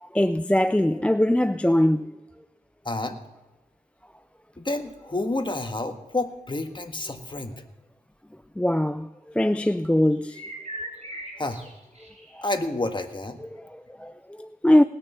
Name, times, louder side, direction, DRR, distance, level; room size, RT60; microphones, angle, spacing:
voice 1, 0.0-2.1 8.6-9.1 9.3-10.4 12.3-12.4 13.4-14.8, left 1 dB, 10° left, 0.4 m, -22 dB
voice 2, 2.8-3.2 4.6-7.6 11.4-11.6 12.4-13.4, left 2 dB, 30° left, 1.6 m, -29 dB
sound 1, 10.1-12.5, right 1 dB, 45° right, 5.5 m, -39 dB
19.5 x 6.6 x 5.6 m
cardioid pair, 55°, 15 cm